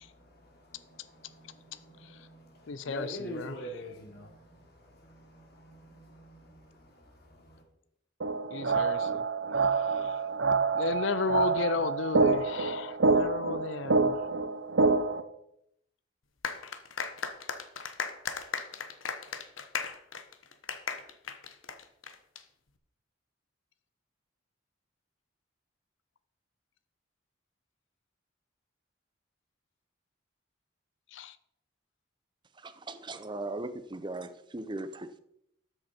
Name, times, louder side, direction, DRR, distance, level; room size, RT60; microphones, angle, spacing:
voice 1, 0.0-7.6, equal, 55° left, 2.8 m, -46 dB
voice 2, 2.7-3.5 8.5-9.2 9.8-10.2 10.7-14.2 31.1-31.4, left 4 dB, 70° left, 0.5 m, -34 dB
sound 1, 8.2-15.2, right 4 dB, 70° right, 0.8 m, -27 dB
sound 2, 16.4-22.4, left 6 dB, 90° left, 1.1 m, -37 dB
voice 3, 32.6-35.2, right 2 dB, 25° right, 0.7 m, -38 dB
13.0 x 7.9 x 4.4 m
head